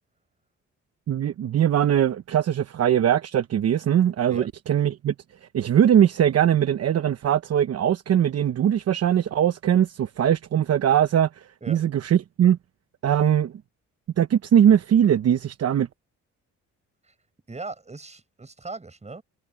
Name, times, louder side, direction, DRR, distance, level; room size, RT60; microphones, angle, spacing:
voice 1, 1.1-5.1 5.5-12.6 13.0-13.5 14.2-15.9, right 10 dB, 55° right, 1.0 m, -21 dB
voice 2, 17.5-19.2, right 3 dB, 20° right, 6.5 m, -38 dB
cardioid pair, 90°, 30 cm